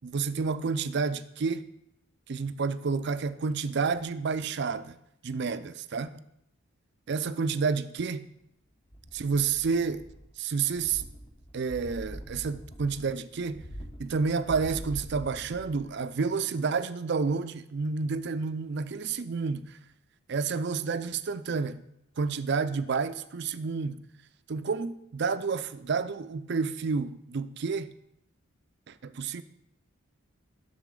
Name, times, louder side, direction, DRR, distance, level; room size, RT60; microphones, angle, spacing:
voice 1, 0.0-1.7 2.3-5.0 5.2-6.1 7.1-8.3 9.1-10.0 10.4-11.0 11.5-13.6 14.0-19.7 20.3-21.8 22.2-24.0 24.5-27.9 28.9-29.4, right 5 dB, 55° right, 0.4 m, -30 dB
sound 1, 8.9-10.3 10.6-15.9 16.3-16.4, equal, 25° left, 0.8 m, -44 dB
10.5 x 6.9 x 3.8 m
head